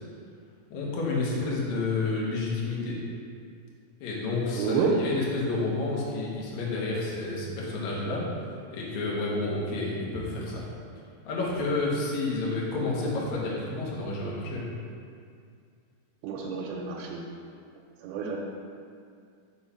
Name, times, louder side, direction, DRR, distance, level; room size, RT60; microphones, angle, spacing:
voice 1, 0.7-3.0 4.0-8.3 8.7-10.6 11.2-14.6, left 3 dB, 65° left, -5 dB, 2.0 m, -30 dB
voice 2, 4.5-4.9 16.2-17.3 18.0-18.4, right 6 dB, 85° right, -2 dB, 2.5 m, -29 dB
5.6 x 4.7 x 5.6 m, 2.3 s
omnidirectional pair, 4.4 m